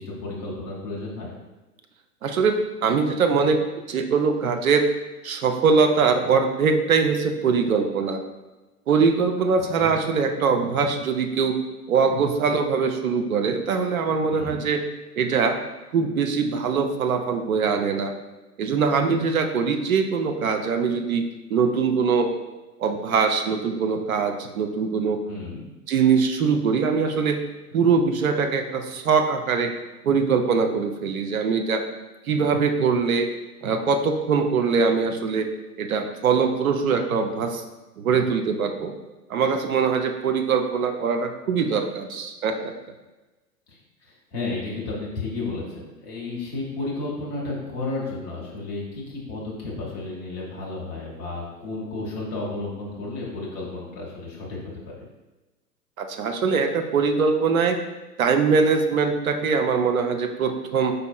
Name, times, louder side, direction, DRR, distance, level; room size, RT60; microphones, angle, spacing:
voice 1, 0.0-1.3 9.8-10.0 14.3-14.7 25.3-25.6 43.7-54.6 54.8-55.0, left 3 dB, 10° left, -4 dB, 0.4 m, -32 dB
voice 2, 2.2-2.5 2.8-3.6 3.9-4.9 5.2-8.2 8.9-11.6 11.9-14.9 15.1-15.6 15.9-18.1 18.6-21.2 21.5-22.3 22.8-25.2 25.9-27.4 27.7-29.7 30.0-31.8 32.3-33.3 33.6-35.5 35.8-37.6 38.0-38.9 39.3-42.7 56.0-57.8 58.2-60.9, right 5 dB, 60° right, 6 dB, 0.7 m, -22 dB
5.1 x 4.3 x 2.2 m, 1.1 s
figure-of-eight pair, 105°, 48 cm